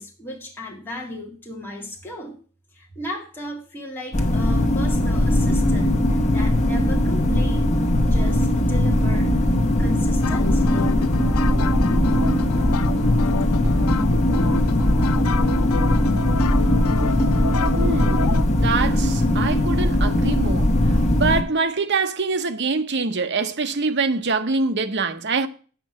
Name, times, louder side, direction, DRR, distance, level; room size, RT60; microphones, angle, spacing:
voice 1, 0.0-2.4 2.7-7.8 8.1-9.4 9.8-11.0, left 1 dB, 10° left, 2.0 m, -35 dB
sound 1, 4.1-21.4, left 1 dB, 30° left, 1.2 m, -19 dB
sound 2, 10.2-18.4, left 6 dB, 85° left, 0.5 m, -30 dB
voice 2, 17.7-20.7 21.2-25.5, right 4 dB, 50° right, 0.8 m, -24 dB
8.6 x 6.0 x 7.2 m
head